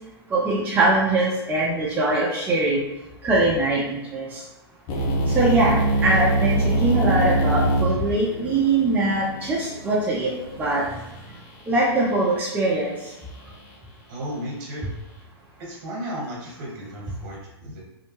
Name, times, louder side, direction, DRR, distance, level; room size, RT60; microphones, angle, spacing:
voice 1, 0.3-2.8 3.2-4.4 5.3-5.8 6.0-10.3 10.6-10.8 11.7-12.9, right 2 dB, 10° right, -5 dB, 0.5 m, -22 dB
sound 1, 4.9-10.8, right 1 dB, 35° left, 0.7 m, -24 dB
voice 2, 14.1-14.9 15.6-17.8, equal, 50° right, -3 dB, 1.2 m, -34 dB
2.6 x 2.2 x 3.0 m, 0.95 s
hypercardioid pair, 120°, 14 cm